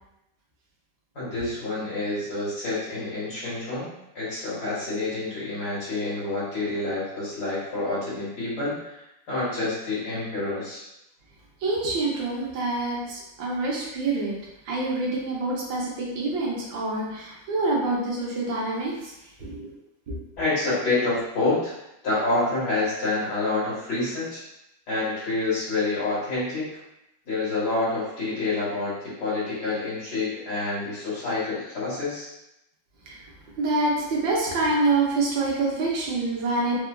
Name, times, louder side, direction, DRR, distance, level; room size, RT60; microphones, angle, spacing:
voice 1, 1.1-3.9 4.1-9.0 9.3-10.8 19.4-19.5 20.4-21.7 22.0-24.4 24.9-26.7 27.3-32.3, left 2 dB, 65° left, -10 dB, 2.2 m, -28 dB
voice 2, 11.6-14.3 14.6-19.1 19.4-19.7 20.1-20.2 33.1-33.2 33.6-36.8, right 2 dB, 85° right, -4 dB, 1.6 m, -26 dB
4.6 x 2.3 x 2.2 m, 0.88 s
omnidirectional pair, 2.0 m